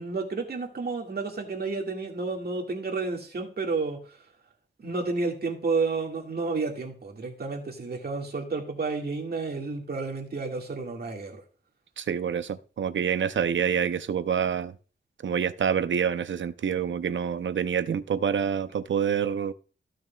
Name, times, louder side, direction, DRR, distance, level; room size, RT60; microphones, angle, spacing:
voice 1, 0.0-4.2 4.8-11.4, right 3 dB, 50° right, 1.9 m, -31 dB
voice 2, 12.0-14.7 15.2-19.5, right 7 dB, 75° right, 0.6 m, -27 dB
14.5 x 6.4 x 2.3 m
wide cardioid pair, 155°, 20 cm